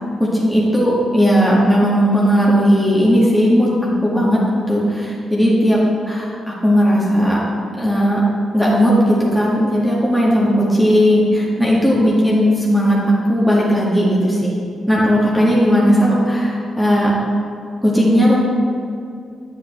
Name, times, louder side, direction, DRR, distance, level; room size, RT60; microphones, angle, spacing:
voice 1, 0.2-6.3 6.6-7.4 7.7-8.2 8.5-14.5 14.9-17.1 17.8-18.4, equal, ahead, -6 dB, 1.8 m, -16 dB
9.6 x 5.9 x 3.3 m, 2.4 s
hypercardioid pair, 40°, 0 cm